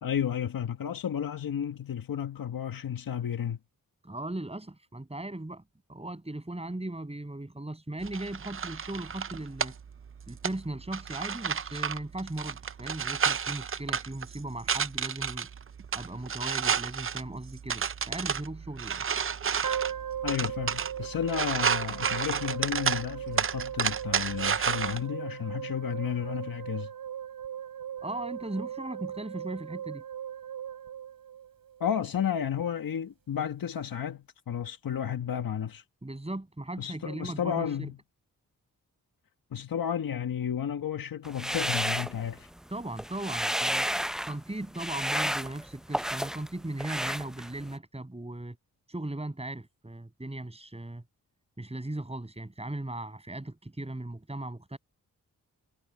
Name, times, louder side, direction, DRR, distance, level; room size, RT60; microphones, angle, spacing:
voice 1, 0.0-3.6 20.2-26.9 31.8-35.8 36.8-38.0 39.5-42.5, left 9 dB, 70° left, 1.7 m, -32 dB
voice 2, 4.0-5.6 5.9-9.7 10.3-15.5 15.9-19.0 28.0-30.0 36.0-37.9 42.7-43.9 44.2-48.6 48.9-51.0 51.6-54.8, right 1 dB, 15° right, 7.6 m, -38 dB
sound 1, 8.0-25.0, right 7 dB, 35° right, 0.6 m, -32 dB
sound 2, 19.6-31.9, right 9 dB, 75° right, 6.4 m, -38 dB
sound 3, 41.3-42.6 42.9-44.4 44.8-46.5 46.8-47.7, equal, ahead, 0.6 m, -31 dB
cardioid pair, 55°, 35 cm